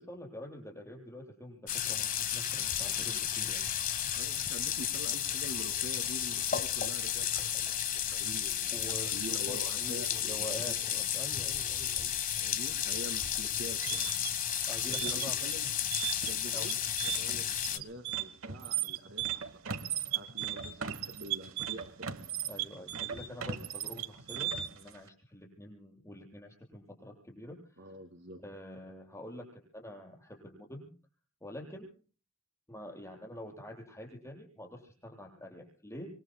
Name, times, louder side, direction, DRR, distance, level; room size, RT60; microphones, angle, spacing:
voice 1, 0.0-3.6 8.7-12.1 14.7-15.4 16.5-16.7 22.5-27.9 28.4-30.9 31.4-31.9 32.7-36.1, left 1 dB, 15° left, 0 dB, 7.5 m, -46 dB
sound 1, 1.7-17.8, left 9 dB, 40° left, 1.3 m, -33 dB
voice 2, 4.2-10.4 10.6-10.7 12.3-14.1 15.0-15.7 16.2-16.8 17.0-19.7 20.1-22.1 27.8-28.4, right 1 dB, 60° right, 5 dB, 2.3 m, -46 dB
sound 2, 13.6-24.9, right 10 dB, 80° right, 1.2 m, -36 dB
27.0 x 23.5 x 2.2 m, 0.39 s
head